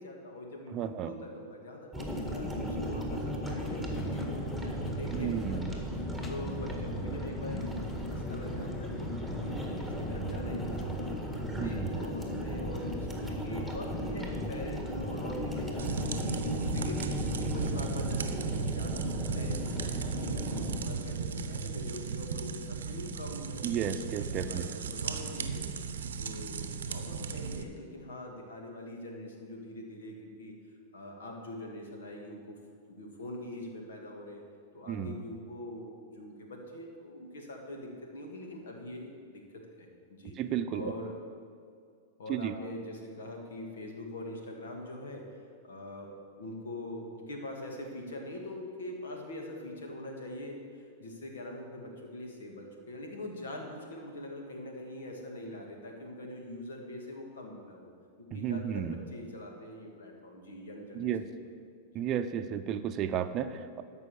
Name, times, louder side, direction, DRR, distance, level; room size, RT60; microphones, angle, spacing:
voice 1, 0.0-5.8 6.3-11.2 11.6-17.1 17.4-23.6 23.9-25.7 26.2-30.6 30.9-32.6 32.9-34.4 34.7-40.4 40.7-41.1 42.2-45.3 45.6-57.9 58.2-61.5 61.9-62.0, left 1 dB, 80° left, 1 dB, 2.1 m, -43 dB
voice 2, 0.7-1.1 5.1-5.7 11.5-11.9 23.6-24.7 34.9-35.1 40.4-40.9 42.3-42.6 58.3-59.0 60.9-61.2 61.9-63.8, right 9 dB, 40° right, 10 dB, 0.6 m, -33 dB
sound 1, 1.9-20.8, equal, 5° left, 2.0 m, -35 dB
sound 2, 3.4-11.4, left 5 dB, 25° left, 0.9 m, -49 dB
sound 3, 15.8-27.6, right 5 dB, 80° right, 0.7 m, -35 dB
12.5 x 5.5 x 7.0 m, 2.2 s
hypercardioid pair, 105°, 0 cm